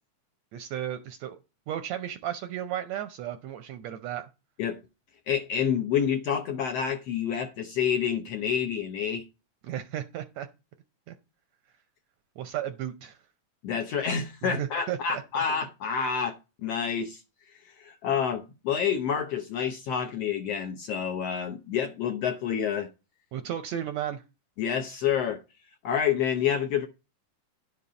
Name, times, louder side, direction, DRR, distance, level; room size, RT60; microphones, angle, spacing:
voice 1, 0.5-1.4 1.7-4.3 9.6-10.5 11.1-11.2 12.4-13.2 14.4-15.4 23.3-24.2, right 11 dB, 75° right, 1.6 m, -34 dB
voice 2, 5.3-9.3 13.6-16.4 16.6-17.2 17.6-22.9 24.6-25.4 25.8-26.9, left 7 dB, 70° left, 1.5 m, -28 dB
11.0 x 5.5 x 4.9 m
omnidirectional pair, 3.6 m